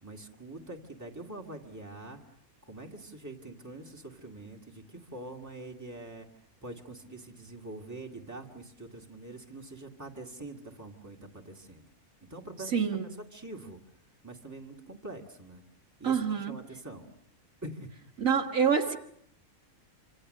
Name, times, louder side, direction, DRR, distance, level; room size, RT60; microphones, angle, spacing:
voice 1, 0.0-2.2 2.7-6.3 6.6-11.8 12.3-12.7 13.3-13.8 14.2-15.6 16.0-16.2 16.5-17.1 17.6-17.9, right 2 dB, 10° right, 1 dB, 2.2 m, -44 dB
voice 2, 12.6-13.2 16.0-16.6 18.2-19.0, right 7 dB, 65° right, 3 dB, 2.0 m, -27 dB
26.5 x 26.5 x 6.5 m, 0.71 s
omnidirectional pair, 1.5 m